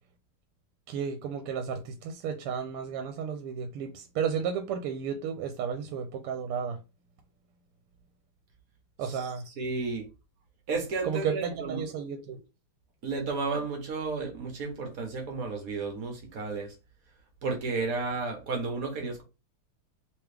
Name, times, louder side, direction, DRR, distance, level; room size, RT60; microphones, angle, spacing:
voice 1, 0.9-6.8 9.0-9.4 11.0-12.4, right 7 dB, 85° right, 1.5 m, -33 dB
voice 2, 9.6-10.1 10.7-11.8 13.0-16.7 17.4-19.2, right 4 dB, 50° right, 1.3 m, -32 dB
3.5 x 3.1 x 3.3 m
omnidirectional pair, 2.4 m